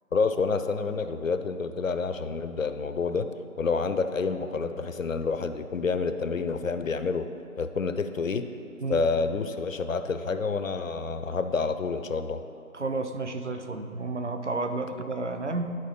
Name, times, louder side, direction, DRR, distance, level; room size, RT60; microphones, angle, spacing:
voice 1, 0.1-3.3 3.6-7.3 7.6-8.5 8.9-12.4, left 4 dB, 65° left, 10 dB, 0.5 m, -28 dB
voice 2, 12.7-15.8, right 3 dB, 55° right, 7 dB, 0.6 m, -31 dB
12.5 x 4.3 x 3.9 m, 2.7 s
figure-of-eight pair, 165°, 44 cm